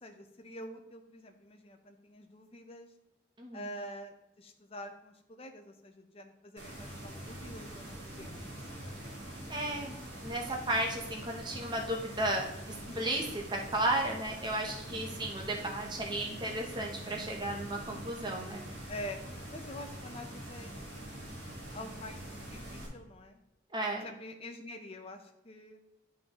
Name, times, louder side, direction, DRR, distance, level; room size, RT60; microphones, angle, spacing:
voice 1, 0.0-2.9 3.5-8.5 12.7-13.1 15.0-15.3 18.9-19.2 19.5-22.2 22.5-23.4 24.0-25.8, left 1 dB, 30° left, 5 dB, 0.7 m, -46 dB
sound 1, 6.6-22.9, right 1 dB, 55° right, 2.1 m, -44 dB
voice 2, 9.5-10.0 10.2-12.5 13.0-13.2 13.5-18.6 23.7-24.1, right 1 dB, 20° right, 1 dB, 0.8 m, -34 dB
11.0 x 3.9 x 2.9 m, 0.90 s
head